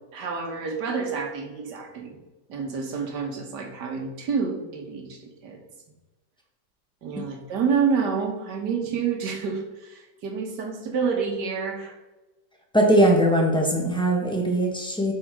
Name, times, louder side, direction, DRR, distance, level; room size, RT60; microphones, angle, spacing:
voice 1, 0.1-2.2 2.5-5.6 7.0-11.9, right 5 dB, 65° right, 3 dB, 1.7 m, -28 dB
voice 2, 12.7-15.1, right 1 dB, 5° left, 0 dB, 1.0 m, -20 dB
7.6 x 4.2 x 4.6 m, 1.1 s
omnidirectional pair, 2.0 m